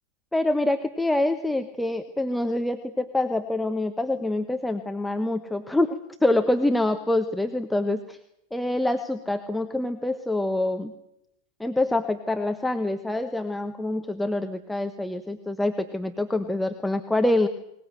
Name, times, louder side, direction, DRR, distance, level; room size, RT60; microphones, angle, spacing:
voice 1, 0.3-8.2 8.5-10.9 11.6-17.5, left 2 dB, 5° left, 6 dB, 1.3 m, -26 dB
22.0 x 20.5 x 7.8 m, 0.82 s
figure-of-eight pair, 90°, 0 cm